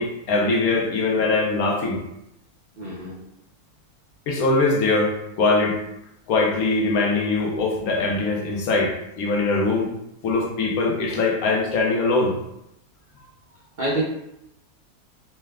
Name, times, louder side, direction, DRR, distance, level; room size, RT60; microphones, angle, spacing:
voice 1, 0.0-2.0 4.3-5.8 6.3-9.9 10.2-12.4, left 3 dB, 75° left, 0 dB, 1.1 m, -22 dB
voice 2, 2.8-3.2 13.8-14.0, right 2 dB, 75° right, -5 dB, 0.4 m, -26 dB
3.2 x 2.2 x 3.3 m, 0.84 s
omnidirectional pair, 1.6 m